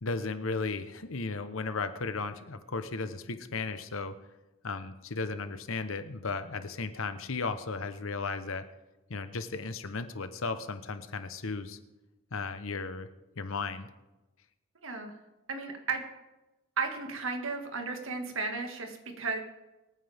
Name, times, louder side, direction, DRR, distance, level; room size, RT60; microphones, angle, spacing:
voice 1, 0.0-4.1 4.6-8.6 9.1-11.8 12.3-13.1 13.4-13.9, left 4 dB, 75° left, 10 dB, 1.0 m, -35 dB
voice 2, 15.5-16.0 16.8-19.4, right 4 dB, 70° right, 4 dB, 1.9 m, -34 dB
24.5 x 9.4 x 3.5 m, 1.0 s
head